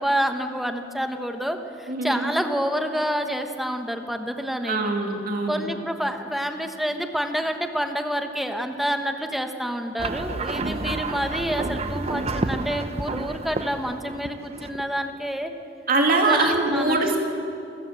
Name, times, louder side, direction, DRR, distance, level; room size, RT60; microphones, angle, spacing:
voice 1, 0.0-4.9 5.5-15.5 16.2-17.1, equal, ahead, 5 dB, 1.3 m, -28 dB
voice 2, 1.9-2.3 4.6-5.6 15.9-17.2, right 2 dB, 50° right, 1 dB, 2.9 m, -22 dB
sound 1, 10.0-15.2, right 2 dB, 35° right, 0.8 m, -30 dB
28.5 x 14.5 x 7.8 m, 2.6 s
head